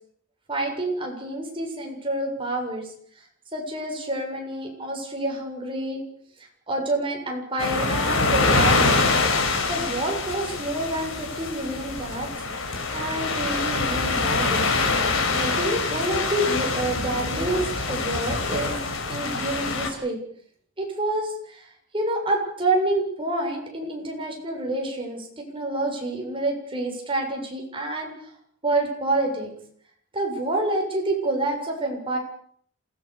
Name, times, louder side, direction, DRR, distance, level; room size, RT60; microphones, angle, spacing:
voice 1, 0.5-2.9 3.5-6.0 6.7-9.0 9.7-12.3 12.6-14.7 15.3-18.8 19.1-20.2 20.8-21.7 21.9-28.1 28.6-29.5 30.1-32.2, right 1 dB, 25° right, 1 dB, 7.4 m, -28 dB
sound 1, 7.6-19.9, left 3 dB, 90° left, 5.0 m, -25 dB
27.5 x 18.0 x 6.9 m, 0.62 s
head